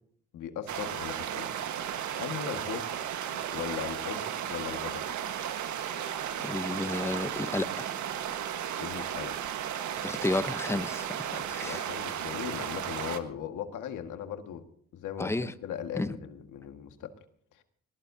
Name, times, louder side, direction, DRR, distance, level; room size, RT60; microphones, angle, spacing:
voice 1, 0.3-1.5 2.2-2.9 3.5-5.0 8.8-9.4 11.3-14.6 14.9-17.1 17.6-17.7, left 9 dB, 80° left, 7 dB, 1.8 m, -38 dB
sound 1, 0.7-13.2, right 9 dB, 75° right, 1.5 m, -34 dB
voice 2, 6.4-7.9 10.0-11.8 15.2-15.5 16.0-16.1, left 2 dB, 10° left, 13 dB, 0.8 m, -32 dB
20.5 x 19.5 x 2.8 m, 0.62 s
cardioid pair, 90°, 30 cm